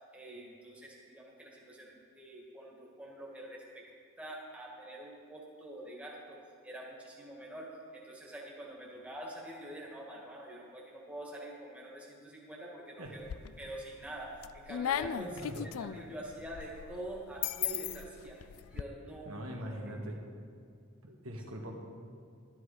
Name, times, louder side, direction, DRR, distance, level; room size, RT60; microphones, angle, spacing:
voice 1, 0.1-3.8 4.2-6.4 6.6-13.3 13.6-18.4 18.7-19.3 19.7-19.9, right 1 dB, 5° right, -4 dB, 2.0 m, -46 dB
sound 1, 13.1-13.8 14.2-18.8, left 10 dB, 75° left, 0.4 m, -37 dB
voice 2, 19.2-20.2 21.0-21.8, right 1 dB, 75° right, 0 dB, 1.6 m, -41 dB
13.0 x 11.0 x 4.9 m, 2.4 s
head